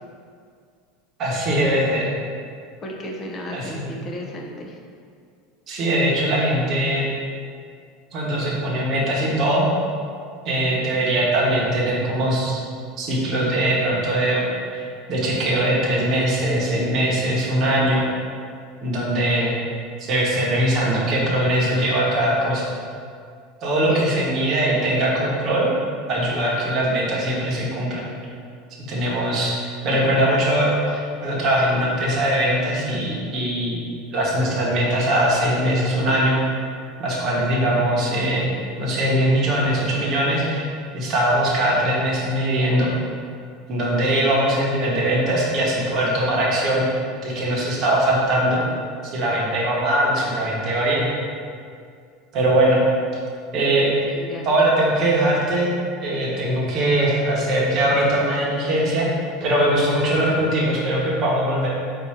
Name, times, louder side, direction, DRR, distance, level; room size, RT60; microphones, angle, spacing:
voice 1, 1.2-2.1 3.5-3.9 5.7-7.0 8.1-9.6 10.4-12.6 13.0-14.5 14.7-14.8 15.1-18.1 18.8-19.6 20.0-22.6 23.6-25.7 26.1-28.1 28.9-29.5 29.8-33.9 34.1-36.4 37.0-38.5 38.8-40.7 40.9-42.9 43.7-46.8 47.2-48.6 49.1-51.1 52.3-52.8 53.5-53.9 54.4-55.7 56.0-59.1 59.4-61.7, right 1 dB, 35° right, -5 dB, 1.0 m, -21 dB
voice 2, 2.8-4.8 23.9-24.4 54.1-54.4, left 1 dB, 25° left, -1 dB, 0.6 m, -34 dB
4.2 x 2.7 x 4.8 m, 2.2 s
supercardioid pair, 160°, 0 cm